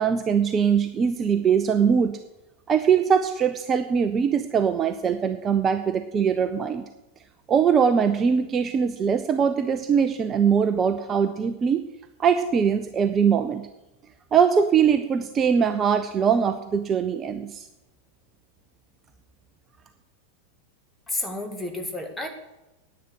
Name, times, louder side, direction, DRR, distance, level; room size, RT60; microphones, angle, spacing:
voice 1, 0.0-2.2 2.7-6.8 7.5-11.8 12.2-13.7 14.3-17.6, right 7 dB, 25° right, 9 dB, 0.7 m, -22 dB
voice 2, 21.1-22.3, left 2 dB, 10° left, 4 dB, 2.2 m, -31 dB
10.0 x 9.0 x 8.4 m, 0.98 s
figure-of-eight pair, 90°, 0 cm